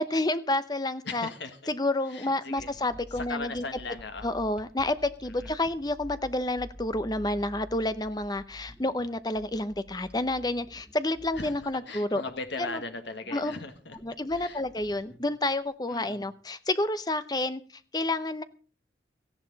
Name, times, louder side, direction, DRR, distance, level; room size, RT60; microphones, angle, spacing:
voice 1, 0.0-1.3 1.7-3.7 4.2-12.2 12.7-12.8 13.3-13.6 14.0-18.4, left 2 dB, 20° left, 13 dB, 0.8 m, -29 dB
voice 2, 1.0-1.6 2.1-2.7 3.1-4.3 5.3-5.5 11.4-14.0 14.3-14.6 15.9-16.2, left 3 dB, 70° left, 7 dB, 1.7 m, -38 dB
sound 1, 2.5-15.6, equal, 5° right, 1.5 m, -49 dB
17.5 x 14.0 x 4.1 m, 0.37 s
head